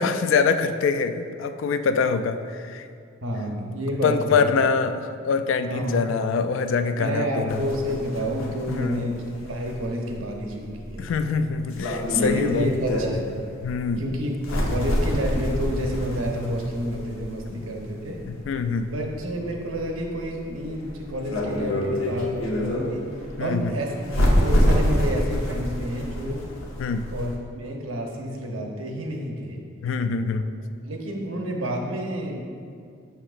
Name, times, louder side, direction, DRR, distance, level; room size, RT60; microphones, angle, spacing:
voice 1, 0.0-2.9 3.9-7.6 8.7-9.0 11.0-12.7 13.6-14.0 17.5-17.7 18.3-18.9 23.4-23.7 26.8-27.1 29.8-30.5, left 5 dB, 70° left, 10 dB, 0.3 m, -24 dB
voice 2, 3.2-4.4 5.7-6.1 7.0-11.1 12.1-13.3 14.0-14.4 14.7-18.2 18.9-26.5 27.1-29.6 30.8-32.4, equal, 90° right, 1 dB, 0.8 m, -29 dB
sound 1, 7.5-27.3, equal, 90° left, 0.8 m, -27 dB
6.5 x 5.8 x 2.5 m, 2.3 s
head